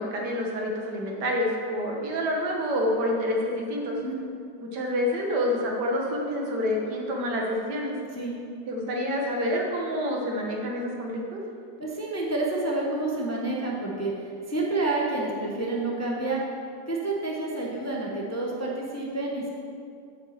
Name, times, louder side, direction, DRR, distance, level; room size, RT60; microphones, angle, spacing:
voice 1, 0.0-4.0 4.6-7.9 8.7-11.4, left 1 dB, 75° right, 0 dB, 1.8 m, -28 dB
voice 2, 11.8-14.1 14.5-16.4 16.9-19.5, right 2 dB, 15° left, -3 dB, 0.7 m, -29 dB
8.2 x 5.6 x 7.3 m, 2.4 s
omnidirectional pair, 1.8 m